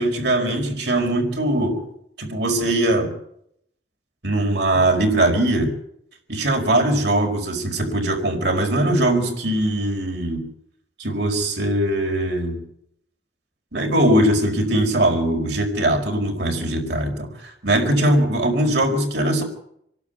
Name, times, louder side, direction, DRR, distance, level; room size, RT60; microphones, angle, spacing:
voice 1, 0.0-1.9 2.2-3.1 4.2-5.7 6.3-10.4 11.0-12.6 13.7-19.4, right 1 dB, 70° right, 2 dB, 5.0 m, -21 dB
26.5 x 12.0 x 9.5 m, 0.75 s
head